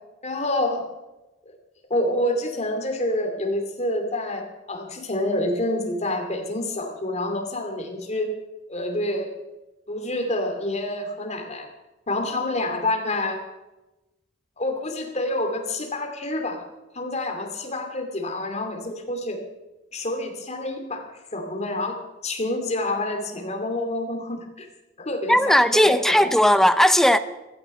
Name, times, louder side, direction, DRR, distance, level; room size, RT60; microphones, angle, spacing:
voice 1, 0.2-0.9 1.5-1.6 1.9-8.3 8.7-9.3 9.9-11.7 12.1-13.4 14.6-16.6 16.9-19.4 19.9-22.0 22.2-24.7 25.0-26.3, left 1 dB, 35° left, 2.5 m, -28 dB
voice 2, 25.3-27.2, equal, ahead, 0.6 m, -17 dB
16.0 x 12.0 x 5.4 m
head